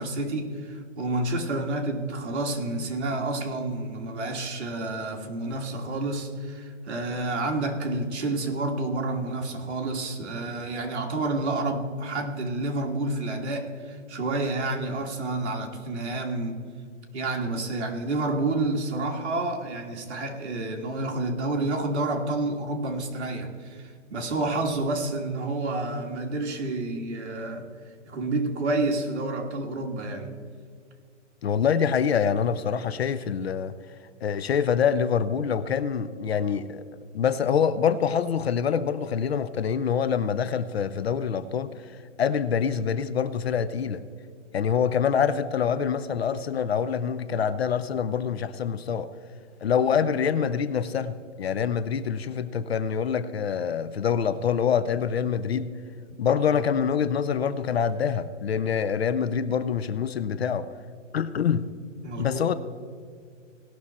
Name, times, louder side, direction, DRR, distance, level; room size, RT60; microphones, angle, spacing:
voice 1, 0.0-16.6 17.1-27.7 28.1-30.3 62.0-62.4, right 2 dB, 60° right, 1.9 m, -29 dB
voice 2, 31.4-33.7 34.2-36.8 37.1-41.7 42.2-44.0 44.5-49.1 49.6-55.7 56.2-60.7 61.1-61.7 62.2-62.6, left 7 dB, 55° left, 0.6 m, -25 dB
18.0 x 6.3 x 4.2 m
hypercardioid pair, 170°, 39 cm